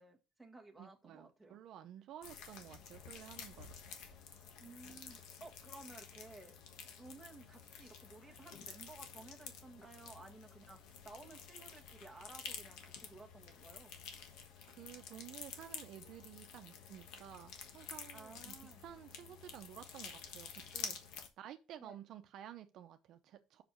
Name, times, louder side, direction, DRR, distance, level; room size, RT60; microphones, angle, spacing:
voice 1, 0.0-1.6 4.6-6.6 7.0-14.0 18.1-18.8 21.8-22.0, right 2 dB, 5° right, 1.6 m, -56 dB
voice 2, 0.8-3.7 14.7-21.0 21.4-23.6, right 11 dB, 60° right, 0.8 m, -53 dB
sound 1, 2.2-21.3, left 7 dB, 80° left, 1.4 m, -50 dB
6.0 x 5.1 x 6.1 m
cardioid pair, 135°, 0 cm